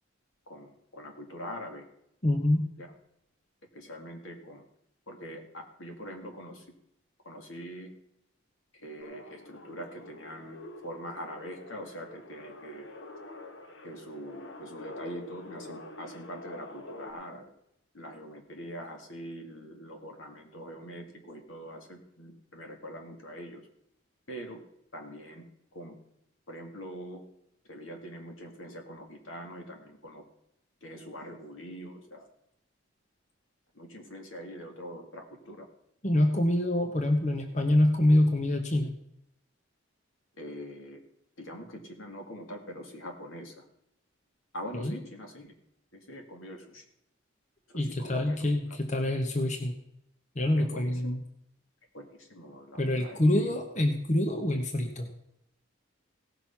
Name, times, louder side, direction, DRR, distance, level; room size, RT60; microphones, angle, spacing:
voice 1, 0.5-1.9 2.8-2.9 3.7-4.6 5.1-6.7 7.2-7.9 8.7-12.9 13.8-17.5 17.9-23.7 24.3-24.6 24.9-25.4 25.7-26.0 26.5-27.2 27.7-30.2 30.8-32.3 33.7-35.7 40.4-41.0 41.4-43.6 44.5-45.5 45.9-46.8 47.7-48.8 50.6-51.2 51.9-53.5, equal, 85° left, 3 dB, 2.2 m, -43 dB
voice 2, 2.2-2.6 36.0-38.9 44.7-45.0 47.7-49.8 50.3-51.2 52.8-55.1, left 1 dB, 35° left, 6 dB, 1.0 m, -26 dB
sound 1, 9.0-17.1, left 1 dB, 65° left, 1.2 m, -46 dB
17.0 x 6.2 x 5.8 m, 0.78 s
head